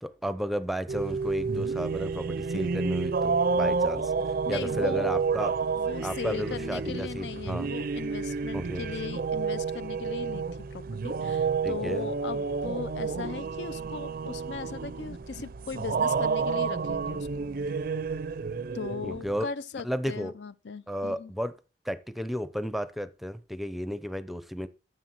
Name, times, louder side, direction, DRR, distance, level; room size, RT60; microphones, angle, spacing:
voice 1, 0.0-4.1 4.5-5.5 6.0-7.7 8.5-8.9 11.6-12.1 19.0-19.5 19.8-20.3 20.9-21.5 21.8-24.7, equal, ahead, 0.6 m, -33 dB
sound 1, 0.9-19.4, right 5 dB, 55° right, 0.5 m, -30 dB
voice 2, 4.4-5.1 5.8-17.5 18.7-21.3, left 5 dB, 70° left, 0.5 m, -38 dB
13.5 x 6.7 x 4.5 m
head